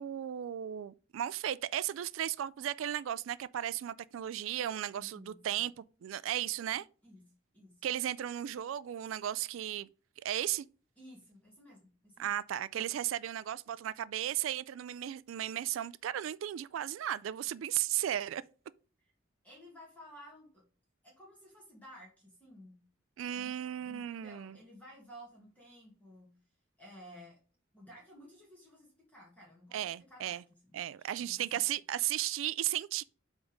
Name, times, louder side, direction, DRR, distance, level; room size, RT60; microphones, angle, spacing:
voice 1, 0.0-6.9 7.8-9.9 10.2-10.7 12.2-18.4 23.2-24.6 29.7-30.4 30.7-33.0, right 11 dB, 85° right, 0.3 m, -35 dB
voice 2, 4.9-5.4 7.0-7.2 7.5-7.8 11.0-12.4 19.0-19.1 19.4-20.6 21.0-22.8 23.3-26.3 26.8-27.4 27.7-30.8 31.2-31.6, equal, 10° left, 1.9 m, -54 dB
7.9 x 3.6 x 5.1 m
head